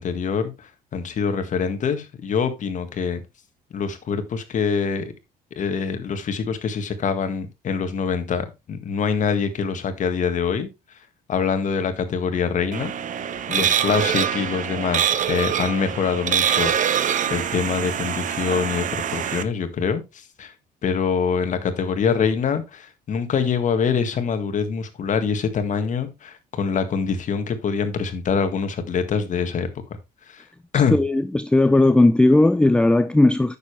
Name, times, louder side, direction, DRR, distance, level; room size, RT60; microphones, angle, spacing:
voice 1, 0.0-3.2 3.7-5.1 5.6-10.7 11.3-12.9 13.5-20.5 20.8-29.7 30.3-30.5 30.7-31.0, left 6 dB, 50° left, 1.8 m, -25 dB
sound 1, 12.7-19.4, right 9 dB, 50° right, 0.9 m, -24 dB
voice 2, 30.9-33.6, left 2 dB, 5° left, 0.5 m, -16 dB
9.5 x 7.1 x 3.3 m
cardioid pair, 110°, 17 cm